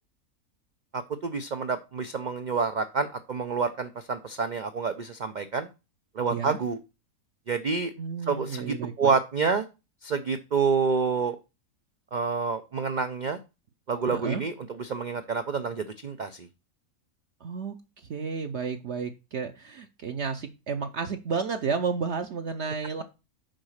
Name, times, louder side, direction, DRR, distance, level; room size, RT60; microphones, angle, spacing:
voice 1, 0.9-5.7 6.2-6.8 7.5-7.9 8.3-9.6 10.0-11.4 12.1-13.4 13.9-16.5, right 5 dB, 75° right, 9 dB, 0.4 m, -28 dB
voice 2, 8.0-9.1 14.1-14.4 17.4-23.0, right 5 dB, 60° right, 6 dB, 0.8 m, -32 dB
6.3 x 4.9 x 6.4 m, 0.28 s
omnidirectional pair, 1.6 m